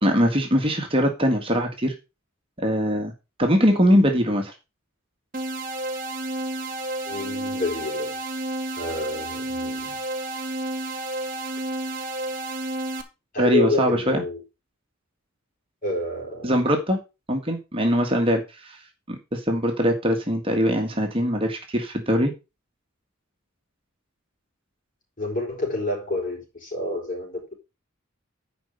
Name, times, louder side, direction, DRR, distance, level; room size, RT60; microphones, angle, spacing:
voice 1, 0.0-1.9 2.6-3.1 3.4-4.5 13.4-14.2 16.4-17.0 17.3-18.8 19.1-22.3, equal, 25° right, 1.7 m, -22 dB
sound 1, 5.3-13.0, right 2 dB, 40° right, 1.8 m, -31 dB
voice 2, 7.0-8.2 8.8-10.0 13.3-14.4 15.8-16.5 25.2-27.5, left 2 dB, 40° left, 4.9 m, -28 dB
10.5 x 5.5 x 5.2 m
head